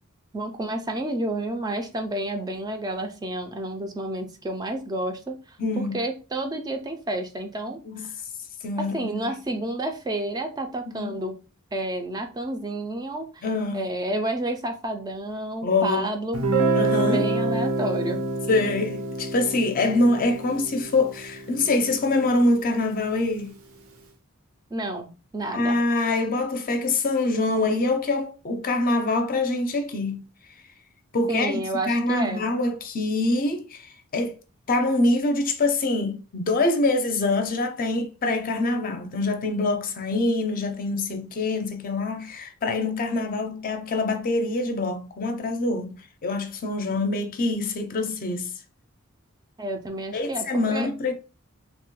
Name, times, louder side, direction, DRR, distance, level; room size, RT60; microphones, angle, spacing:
voice 1, 0.3-5.6 5.9-8.1 8.8-11.4 11.7-13.4 13.7-16.4 17.1-18.2 24.7-25.1 25.3-25.8 31.3-32.5 49.6-50.5 50.7-50.9, right 1 dB, 20° right, 0.3 m, -30 dB
voice 2, 5.6-6.0 7.9-8.1 8.6-9.3 10.9-11.1 13.4-13.8 15.6-16.1 16.7-17.3 18.5-23.5 25.5-30.2 31.1-34.4 34.7-46.0 46.2-48.5 50.1-51.1, left 2 dB, 45° left, 0.5 m, -25 dB
Guitar, 16.3-22.1, right 2 dB, 85° right, 0.6 m, -27 dB
3.0 x 2.1 x 3.0 m
head